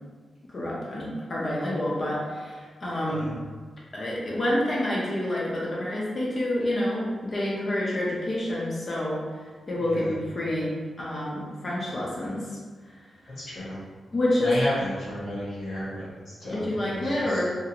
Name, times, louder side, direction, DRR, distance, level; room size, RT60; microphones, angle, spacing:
voice 1, 0.5-3.3 3.9-12.6 13.2-13.3 14.1-14.6 16.5-17.6, left 1 dB, 35° left, -6 dB, 0.5 m, -28 dB
voice 2, 13.4-13.8 14.4-17.4, left 1 dB, 75° left, -9 dB, 1.3 m, -33 dB
2.8 x 2.6 x 2.4 m, 1.5 s
wide cardioid pair, 130°, 0 cm